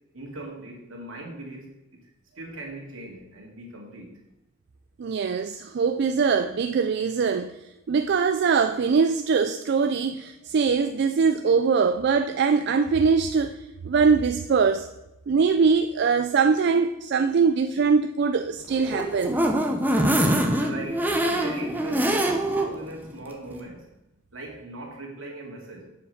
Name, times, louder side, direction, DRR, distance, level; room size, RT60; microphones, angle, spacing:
voice 1, 0.1-2.0 2.4-4.1 20.6-23.9 24.3-25.9, right 1 dB, 80° right, 2.4 m, -39 dB
voice 2, 5.0-7.6 7.9-13.6 13.8-14.9 15.3-19.4 20.2-20.3, right 5 dB, 55° right, 0.4 m, -22 dB
sound 1, 18.7-22.7 23.1-23.2 23.5-23.6, right 1 dB, 10° right, 0.8 m, -24 dB
7.4 x 5.1 x 6.5 m
head